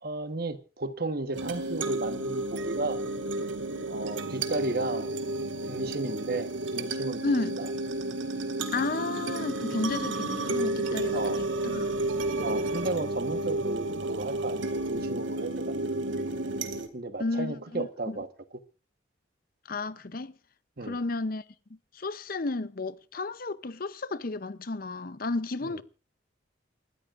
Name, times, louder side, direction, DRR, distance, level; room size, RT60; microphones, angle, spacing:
voice 1, 0.0-3.0 3.9-5.2 5.7-7.2 7.6-7.7 11.1-11.4 12.4-16.0 16.3-16.4 16.9-18.3 20.8-21.0 25.6-25.8, right 2 dB, 50° right, 1.3 m, -34 dB
sound 1, 1.3-16.9, right 2 dB, 75° right, 2.0 m, -32 dB
voice 2, 7.2-7.6 8.7-11.4 11.6-11.9 17.2-18.2 19.7-20.3 20.8-21.4 21.9-25.8, left 3 dB, 45° left, 0.7 m, -32 dB
29.0 x 13.5 x 2.5 m
head